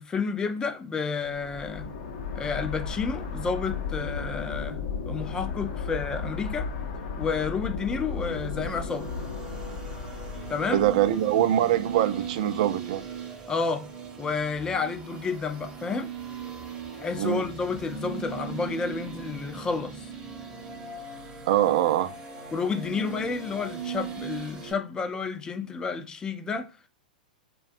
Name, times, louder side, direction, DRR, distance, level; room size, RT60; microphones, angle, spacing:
voice 1, 0.0-1.9 2.3-4.8 5.1-6.7 7.2-9.1 10.5-10.8 13.5-13.9 14.2-16.1 16.9-20.1 22.5-26.7, left 5 dB, 15° left, 0.4 m, -30 dB
sound 1, 1.3-11.1, left 5 dB, 60° left, 0.6 m, -34 dB
sound 2, 7.8-24.7, right 7 dB, 20° right, 0.7 m, -39 dB
voice 2, 10.7-13.0 17.2-17.4 21.5-22.1, right 11 dB, 55° right, 0.4 m, -23 dB
2.6 x 2.2 x 2.5 m
hypercardioid pair, 105°, 5 cm